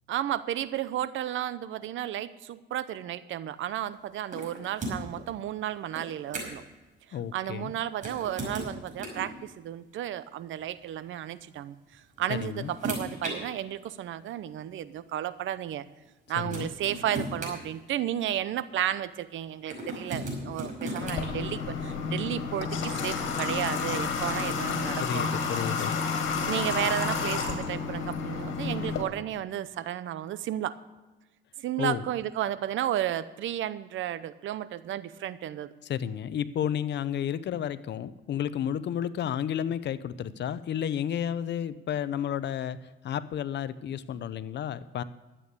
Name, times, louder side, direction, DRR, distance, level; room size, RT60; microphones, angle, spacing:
voice 1, 0.1-6.6 7.3-15.8 16.3-25.3 26.4-30.8 31.6-35.7, right 11 dB, 75° right, 15 dB, 0.7 m, -33 dB
sound 1, 4.3-5.2 5.9-6.7 7.9-9.3 10.6-10.8 11.9-13.4 14.3-14.4 16.0-16.1 16.5-18.3 19.7-21.3, right 1 dB, 40° right, 5.5 m, -36 dB
voice 2, 7.1-7.7 12.3-12.7 16.4-16.7 25.0-26.0 31.8-32.0 35.8-42.8 43.0-45.0, left 9 dB, 60° left, 14 dB, 0.7 m, -31 dB
Water / Water tap faucet, 21.0-29.0, left 5 dB, 80° left, 2.1 m, -30 dB
12.5 x 8.5 x 6.8 m, 1.1 s
cardioid pair, 90°, 20 cm